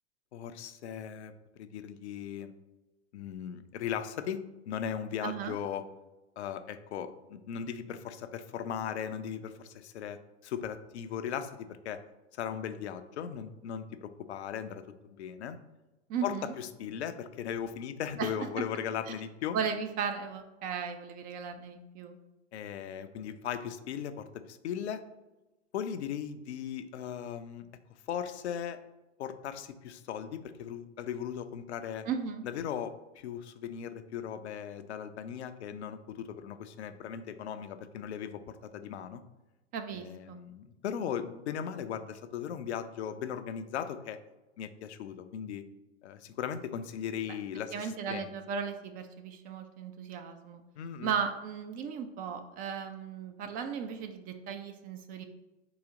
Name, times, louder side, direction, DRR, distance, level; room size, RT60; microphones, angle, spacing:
voice 1, 0.3-2.5 3.1-5.8 6.4-12.0 12.3-15.6 16.2-19.6 22.5-25.0 25.7-27.7 28.1-28.8 29.2-32.1 32.4-39.2 39.9-44.2 44.6-45.6 46.0-48.4 50.8-51.1, left 8 dB, 70° left, 10 dB, 0.5 m, -38 dB
voice 2, 5.2-5.6 16.1-16.5 18.2-18.3 19.5-22.2 32.1-32.4 39.7-40.4 47.3-47.4 47.7-50.6 51.0-55.2, right 6 dB, 25° right, 7 dB, 0.3 m, -36 dB
4.0 x 2.8 x 4.8 m, 1.0 s
hypercardioid pair, 95°, 35 cm